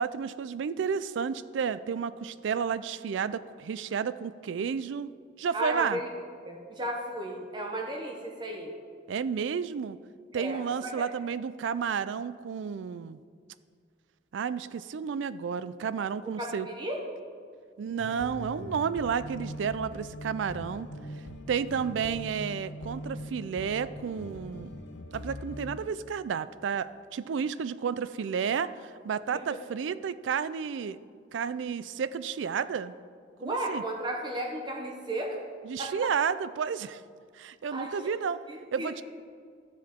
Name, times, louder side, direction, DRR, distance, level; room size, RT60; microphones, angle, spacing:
voice 1, 0.0-5.1 5.4-6.0 9.1-10.0 10.3-13.2 14.3-16.7 17.8-20.9 21.5-24.7 25.1-31.0 31.3-32.9 33.4-33.8 35.6-37.0 37.3-38.4 38.7-39.0, right 6 dB, 85° right, 16 dB, 0.4 m, -31 dB
voice 2, 5.5-6.1 6.4-8.7 10.3-11.1 16.2-17.0 29.3-29.4 33.4-35.4 35.8-36.1 37.7-38.0 38.5-39.0, right 1 dB, 25° right, 0 dB, 0.8 m, -34 dB
sound 1, 18.0-25.9, left 1 dB, 75° left, 0.6 m, -41 dB
12.5 x 7.4 x 3.6 m, 2.1 s
head